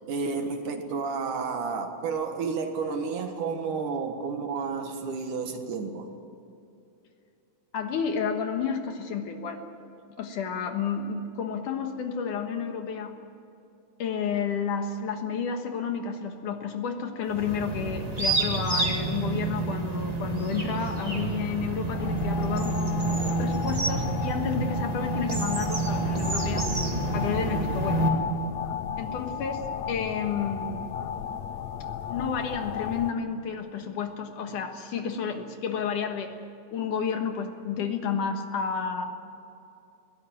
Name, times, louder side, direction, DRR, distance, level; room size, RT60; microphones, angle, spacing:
voice 1, 0.1-6.1, right 5 dB, 65° right, 5 dB, 2.9 m, -31 dB
voice 2, 7.7-9.6 10.2-13.2 14.0-26.7 27.1-28.1 29.0-30.9 32.1-36.3 36.7-39.1, left 6 dB, 65° left, 5 dB, 2.8 m, -31 dB
sound 1, 17.3-28.1, right 2 dB, 20° right, 1.2 m, -28 dB
sound 2, 21.9-33.1, left 8 dB, 85° left, 1.4 m, -34 dB
22.0 x 17.0 x 9.3 m, 2.7 s
omnidirectional pair, 4.1 m